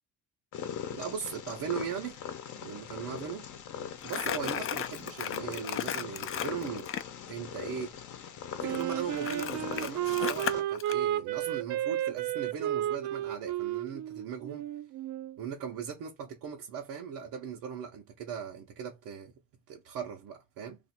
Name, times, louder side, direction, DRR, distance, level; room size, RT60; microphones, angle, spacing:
Purr, 0.5-10.6, left 8 dB, 65° left, 0.8 m, -41 dB
voice 1, 0.9-2.2 2.6-3.5 4.0-6.9 7.3-8.0 8.6-14.7 15.4-19.3 19.7-20.8, right 7 dB, 90° right, 0.8 m, -39 dB
Crumpling crinkling, 4.0-7.1 8.7-11.0, left 9 dB, 45° left, 0.4 m, -35 dB
Wind instrument woodwind instrument, 8.6-15.4, right 12 dB, 70° right, 0.5 m, -32 dB
2.6 x 2.5 x 4.2 m
cardioid pair, 140°, 32 cm